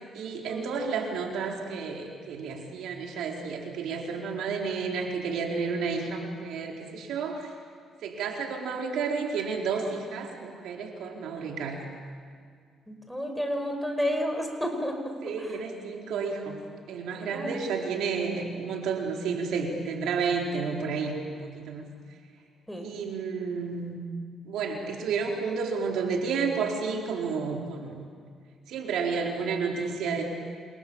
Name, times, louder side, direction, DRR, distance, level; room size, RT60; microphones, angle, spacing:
voice 1, 0.1-7.5 8.0-11.8 15.2-16.6 16.9-21.9 22.8-23.9 24.4-28.1 28.7-30.2, right 5 dB, 80° right, 0 dB, 4.4 m, -31 dB
voice 2, 12.9-15.1 15.4-15.5 17.3-17.5 22.7-22.9, equal, 5° left, 4 dB, 5.3 m, -31 dB
29.0 x 28.0 x 7.3 m, 2.1 s
cardioid pair, 90°, 0 cm